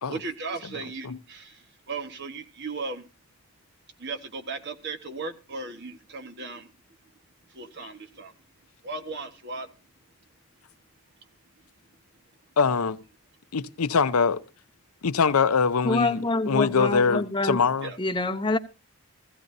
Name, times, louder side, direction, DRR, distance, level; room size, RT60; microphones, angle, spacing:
voice 1, 0.1-3.0 4.0-6.7 7.5-8.3 8.8-9.7 17.8-18.0, right 3 dB, 50° right, 1.3 m, -36 dB
voice 2, 12.6-13.0 13.5-14.4 15.0-17.9, left 5 dB, 90° left, 0.7 m, -23 dB
voice 3, 15.8-17.6 18.0-18.6, left 2 dB, 20° left, 0.7 m, -26 dB
16.5 x 15.0 x 2.6 m
head